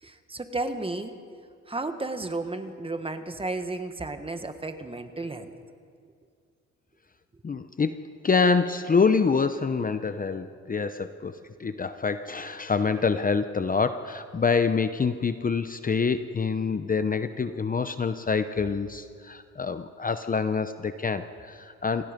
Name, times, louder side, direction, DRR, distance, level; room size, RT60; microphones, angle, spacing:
voice 1, 0.0-1.2 1.7-5.5, right 2 dB, 20° right, 8 dB, 1.6 m, -33 dB
voice 2, 7.4-22.1, left 5 dB, 30° left, 10 dB, 0.8 m, -26 dB
27.5 x 18.0 x 5.3 m, 2.3 s
cardioid pair, 90°, 30 cm